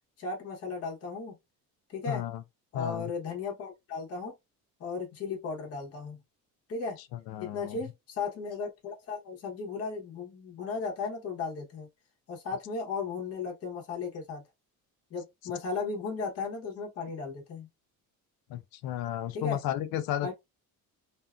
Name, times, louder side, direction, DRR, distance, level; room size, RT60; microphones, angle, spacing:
voice 1, 0.2-1.3 1.9-2.2 2.7-4.3 4.8-6.2 6.7-7.0 7.4-11.9 12.3-14.4 15.1-17.7 19.3-19.6 20.2-20.3, left 4 dB, 40° left, 0.9 m, -35 dB
voice 2, 2.1-2.4 2.7-3.1 7.3-7.8 18.5-20.3, left 12 dB, 80° left, 0.5 m, -33 dB
2.6 x 2.4 x 2.3 m
cardioid pair, 175°, 36 cm